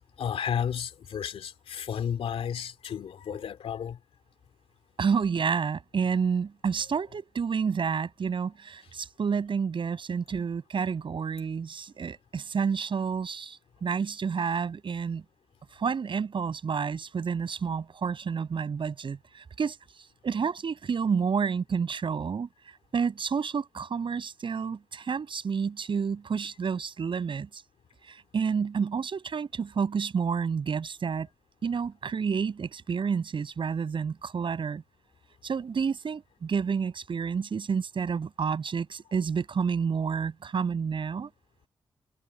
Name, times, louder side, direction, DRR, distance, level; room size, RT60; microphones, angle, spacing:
voice 1, 0.2-4.0, left 8 dB, 80° left, 2.7 m, -32 dB
voice 2, 5.0-15.2 15.7-19.8 20.2-22.5 22.9-27.6 28.1-31.3 31.6-34.8 35.4-41.3, right 6 dB, 60° right, 7.5 m, -29 dB
cardioid pair, 85°, 10 cm